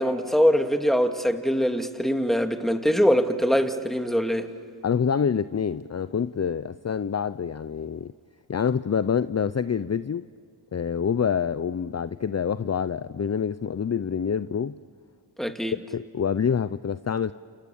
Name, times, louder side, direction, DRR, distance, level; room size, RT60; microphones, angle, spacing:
voice 1, 0.0-4.5 15.4-15.7, equal, ahead, 2.3 m, -23 dB
voice 2, 4.8-8.1 8.5-10.3 10.7-14.8 15.9-17.3, left 7 dB, 35° left, 0.6 m, -26 dB
29.0 x 28.5 x 7.2 m
cardioid pair, 55°, 44 cm